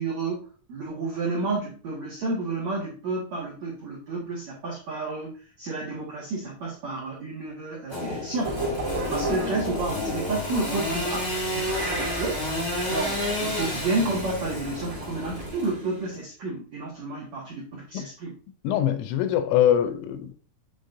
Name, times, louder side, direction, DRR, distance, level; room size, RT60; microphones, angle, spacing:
voice 1, 0.0-18.4, right 3 dB, 70° right, 1.6 m, -31 dB
Engine / Sawing, 7.9-16.1, left 1 dB, 35° left, 1.4 m, -31 dB
sound 1, 8.4-15.5, right 2 dB, 55° right, 0.8 m, -34 dB
voice 2, 18.6-20.3, left 10 dB, 85° left, 3.2 m, -23 dB
9.2 x 4.2 x 2.6 m
omnidirectional pair, 5.8 m